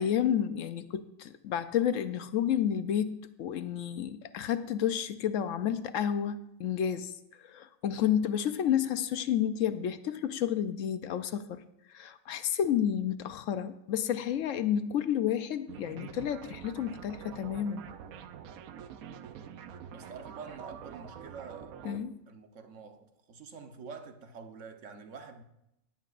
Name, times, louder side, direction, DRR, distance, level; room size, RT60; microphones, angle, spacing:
voice 1, 0.0-7.1 7.4-11.6 11.9-17.9 21.8-22.2, left 9 dB, 70° left, 0.9 m, -30 dB
sound 1, 15.7-22.0, right 8 dB, 85° right, 1.1 m, -46 dB
voice 2, 19.9-21.8 22.3-25.4, right 5 dB, 60° right, 1.3 m, -46 dB
17.5 x 10.5 x 2.5 m
omnidirectional pair, 1.5 m